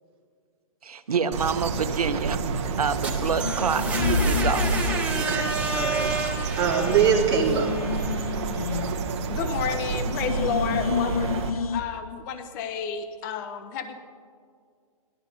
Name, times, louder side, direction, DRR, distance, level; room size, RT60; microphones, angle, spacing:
voice 1, 0.8-4.8, right 6 dB, 90° right, 11 dB, 0.7 m, -27 dB
sound 1, 1.3-11.5, right 5 dB, 50° right, 1.0 m, -30 dB
sound 2, 2.2-2.9 3.2-5.8 6.1-6.2 6.6-9.7 10.1-11.8, left 6 dB, 80° left, 0.6 m, -32 dB
sound 3, 2.8-8.6, right 1 dB, 10° right, 1.3 m, -29 dB
voice 2, 5.1-7.7, right 7 dB, 25° right, -1 dB, 1.7 m, -24 dB
voice 3, 9.3-14.0, left 6 dB, 30° left, 9 dB, 0.6 m, -31 dB
17.5 x 12.5 x 2.7 m, 2.1 s
hypercardioid pair, 140°, 19 cm